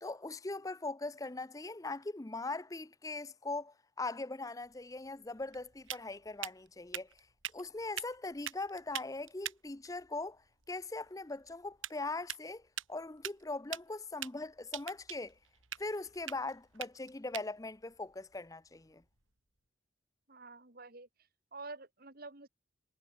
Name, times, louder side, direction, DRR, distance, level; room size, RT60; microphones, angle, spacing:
voice 1, 0.0-7.1 7.5-10.4 10.7-12.6 12.9-15.3 15.8-19.0, left 3 dB, 15° left, 0.6 m, -40 dB
sound 1, 4.6-19.3, right 11 dB, 85° right, 4.7 m, -47 dB
voice 2, 20.3-21.1 21.5-22.5, right 3 dB, 50° right, 2.5 m, -48 dB
head